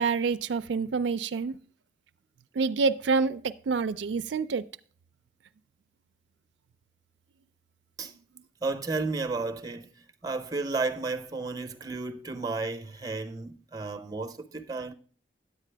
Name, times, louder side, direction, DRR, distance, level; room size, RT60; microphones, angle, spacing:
voice 1, 0.0-1.6 2.6-4.6, right 4 dB, 85° right, 0.4 m, -27 dB
voice 2, 8.6-9.9 10.2-14.9, right 3 dB, 20° right, 0.7 m, -32 dB
10.0 x 8.3 x 3.3 m
head